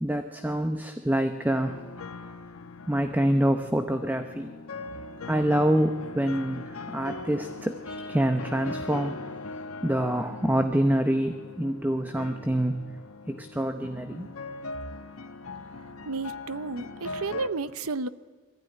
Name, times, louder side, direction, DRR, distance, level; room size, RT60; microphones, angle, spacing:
voice 1, 0.0-1.8 2.9-4.6 5.3-9.2 9.8-12.8 13.3-14.3, right 1 dB, 10° right, 7 dB, 0.8 m, -26 dB
sound 1, 1.6-17.5, left 3 dB, 80° left, 1.1 m, -40 dB
voice 2, 16.1-18.1, right 3 dB, 85° right, 15 dB, 0.8 m, -32 dB
21.0 x 14.5 x 10.0 m, 1.5 s
head